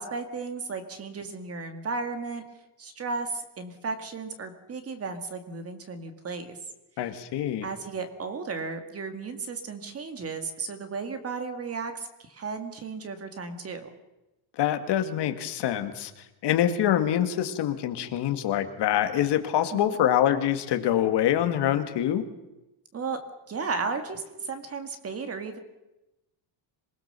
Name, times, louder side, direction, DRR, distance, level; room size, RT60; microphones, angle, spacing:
voice 1, 0.0-2.4 2.8-6.6 7.6-13.9 19.7-20.0 22.9-23.2 23.5-25.6, right 4 dB, 30° right, 8 dB, 2.2 m, -34 dB
voice 2, 7.0-7.7 14.6-16.1 16.4-22.2, left 11 dB, 55° left, 8 dB, 2.1 m, -25 dB
26.5 x 20.0 x 6.9 m, 0.98 s
cardioid pair, 170°, 48 cm